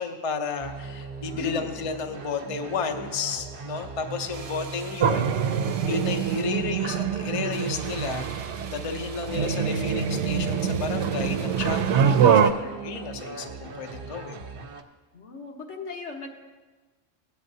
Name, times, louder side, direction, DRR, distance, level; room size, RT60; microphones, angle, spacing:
voice 1, 0.0-5.5 5.9-14.4, left 5 dB, 35° left, 6 dB, 0.6 m, -32 dB
sound 1, 0.6-14.8, right 4 dB, 60° right, 0.9 m, -39 dB
voice 2, 1.2-1.8 15.1-16.3, left 4 dB, 85° left, 0 dB, 1.6 m, -37 dB
sound 2, 4.3-6.6 7.5-12.5, right 4 dB, 40° right, 0.5 m, -42 dB
sound 3, 5.0-12.5, right 7 dB, 85° right, 0.9 m, -24 dB
17.0 x 8.4 x 2.7 m, 1.3 s
omnidirectional pair, 1.1 m